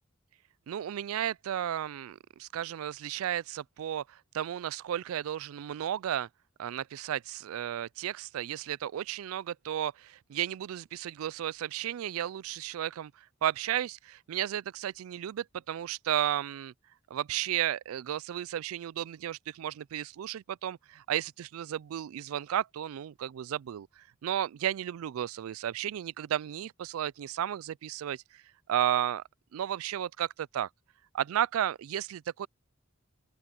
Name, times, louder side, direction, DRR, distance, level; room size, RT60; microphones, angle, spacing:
voice 1, 0.7-6.3 6.6-16.7 17.1-28.4 28.7-29.2 29.5-30.7 31.1-32.5, right 11 dB, 90° right, 0.3 m, -33 dB
open air
head